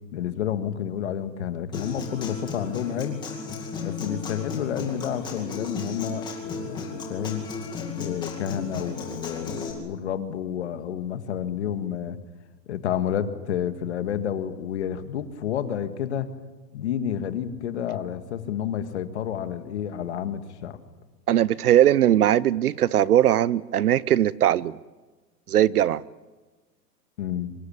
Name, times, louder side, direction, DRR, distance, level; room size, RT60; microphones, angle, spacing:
voice 1, 0.1-3.2 3.8-7.5 8.0-12.2 12.7-16.3 16.7-20.8 27.2-27.5, left 9 dB, 40° left, 1.8 m, -30 dB
Human voice / Acoustic guitar, 1.7-9.7, left 4 dB, 10° left, 2.3 m, -35 dB
voice 2, 21.3-24.7 25.5-26.0, right 11 dB, 60° right, 0.7 m, -20 dB
24.5 x 22.5 x 8.7 m
hypercardioid pair, 175°, 50 cm